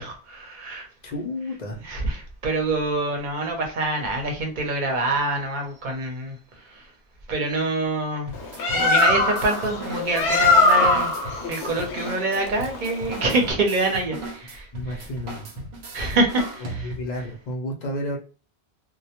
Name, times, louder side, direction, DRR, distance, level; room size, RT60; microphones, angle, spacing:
voice 1, 0.0-0.9 1.8-6.9 7.3-8.3 8.7-15.1 15.9-16.9, right 2 dB, 50° right, 0.8 m, -26 dB
voice 2, 1.0-1.8 14.7-15.7 16.6-18.2, left 1 dB, 55° left, 0.6 m, -32 dB
Bird, 8.3-13.5, left 3 dB, 85° left, 0.9 m, -21 dB
sound 1, 8.3-17.2, right 1 dB, 80° right, 0.9 m, -37 dB
2.2 x 2.1 x 2.8 m
omnidirectional pair, 1.1 m